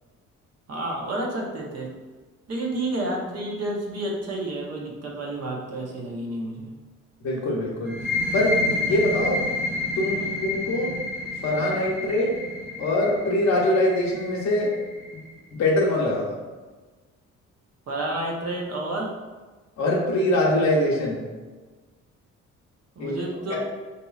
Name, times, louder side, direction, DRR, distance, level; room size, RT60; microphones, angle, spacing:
voice 1, 0.7-1.9 2.5-6.7 17.9-19.1 23.0-23.6, right 1 dB, 55° right, -1 dB, 0.9 m, -30 dB
voice 2, 7.2-8.0 8.3-9.5 10.0-10.9 11.4-12.4 12.8-14.7 15.1-15.2 15.5-16.3 19.8-21.2 23.0-23.1 23.5-23.6, left 1 dB, 65° left, -3 dB, 0.8 m, -23 dB
sound 1, 7.9-15.3, left 2 dB, 40° right, 1.1 m, -29 dB
4.2 x 2.7 x 2.4 m, 1.3 s
cardioid pair, 90°, 30 cm